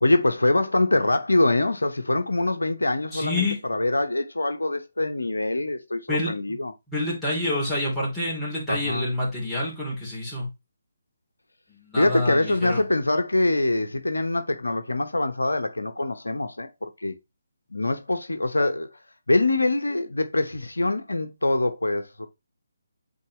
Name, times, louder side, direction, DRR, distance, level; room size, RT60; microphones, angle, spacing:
voice 1, 0.0-6.7 8.7-9.1 12.0-17.1 17.7-18.9 19.3-22.3, left 2 dB, 80° left, 0.8 m, -24 dB
voice 2, 3.1-3.6 6.1-6.6 6.9-10.5 11.7-12.8, left 1 dB, 5° left, 2.9 m, -28 dB
8.5 x 3.9 x 2.9 m
figure-of-eight pair, 145°, 0 cm